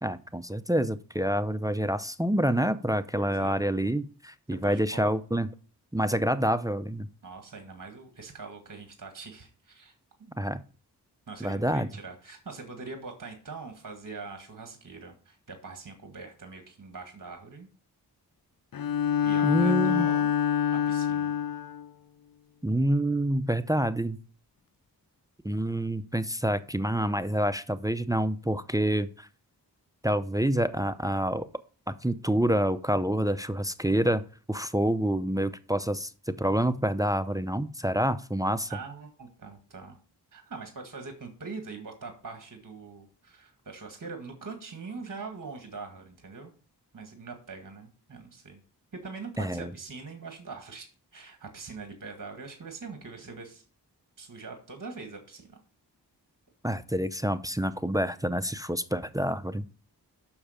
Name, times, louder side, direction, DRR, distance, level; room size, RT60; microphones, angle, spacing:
voice 1, 0.0-5.5 5.9-7.1 10.4-10.6 11.4-11.9 19.4-20.1 22.6-24.2 25.4-29.3 30.0-31.5 31.9-34.2 34.5-38.7 49.4-49.7 56.6-59.7, right 1 dB, 10° right, 13 dB, 0.6 m, -27 dB
voice 2, 3.2-3.6 4.6-5.1 7.2-9.9 10.2-10.3 11.3-17.7 19.2-20.3 20.7-21.3 38.7-40.0 40.3-46.5 46.9-48.6 48.9-53.6 54.2-55.6, right 4 dB, 50° right, 4 dB, 1.8 m, -43 dB
Bowed string instrument, 18.7-21.9, left 9 dB, 55° left, 0.6 m, -26 dB
7.2 x 6.4 x 5.0 m, 0.38 s
cardioid pair, 45°, 41 cm